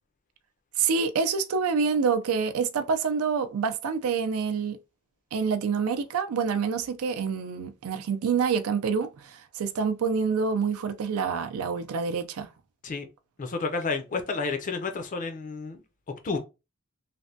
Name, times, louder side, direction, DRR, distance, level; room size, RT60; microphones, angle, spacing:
voice 1, 0.8-4.8 5.3-12.5, right 5 dB, 80° right, 0.4 m, -27 dB
voice 2, 13.4-15.8 16.2-16.4, left 4 dB, 35° left, 0.5 m, -30 dB
3.2 x 2.1 x 2.6 m
head